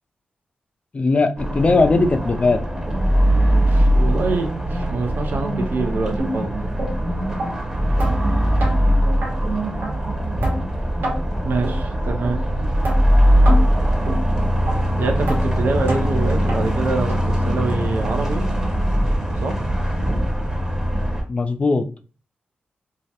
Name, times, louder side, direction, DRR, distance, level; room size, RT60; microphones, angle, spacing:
voice 1, 0.9-2.6 21.3-22.0, left 3 dB, 35° left, 8 dB, 0.3 m, -19 dB
sound 1, 1.4-21.2, equal, 15° right, 0.8 m, -20 dB
voice 2, 3.7-6.5 11.4-12.4 15.0-18.4 19.4-19.6, right 3 dB, 65° right, 3 dB, 0.4 m, -25 dB
sound 2, 6.2-6.3 6.8-6.9 7.4-7.5 8.0-8.1 8.6-8.7 9.2-9.3 9.8-9.9 10.4-10.6 11.0-11.2 11.6-11.8 12.2-12.4 12.8-13.0 13.5-13.6 14.1-14.2 14.7-14.8 15.3-15.4 15.9-16.0 16.5-16.6 17.1-17.2 17.7-17.8 18.3-18.4 18.9-19.0, right 1 dB, 90° right, 1.0 m, -26 dB
2.3 x 2.0 x 2.7 m, 0.36 s
cardioid pair, 60°, 4 cm